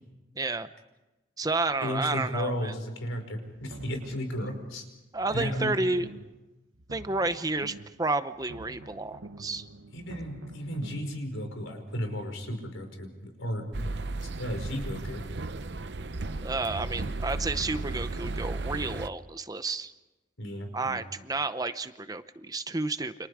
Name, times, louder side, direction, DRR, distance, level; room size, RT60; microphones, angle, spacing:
voice 1, 0.4-0.7 1.4-2.7 5.1-6.1 6.9-9.6 16.4-19.9 20.7-23.1, right 3 dB, 20° right, 11 dB, 0.7 m, -31 dB
voice 2, 1.8-4.8 5.3-5.7 9.9-13.9 14.4-15.2 20.4-21.0, equal, 85° left, 5 dB, 5.3 m, -34 dB
sound 1, 3.5-4.8 5.1-6.4 6.7-8.0 8.3-11.2, right 2 dB, 85° right, 1.1 m, -47 dB
sound 2, 13.7-19.1, right 2 dB, 60° right, 0.8 m, -34 dB
30.0 x 26.5 x 4.9 m, 1.1 s
head